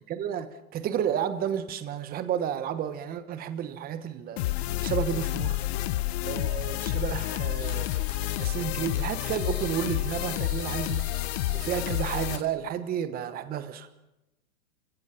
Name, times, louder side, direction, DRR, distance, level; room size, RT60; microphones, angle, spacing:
voice 1, 0.1-4.4 4.8-5.6 6.2-7.9 8.4-11.0 11.5-13.9, right 9 dB, 20° right, 11 dB, 1.1 m, -31 dB
sound 1, 4.4-12.4, left 16 dB, 45° left, 0.9 m, -29 dB
sound 2, 7.5-8.5 8.8-12.4, left 5 dB, 20° left, 5.0 m, -45 dB
27.0 x 17.0 x 5.8 m, 0.93 s
hypercardioid pair, 130°, 43 cm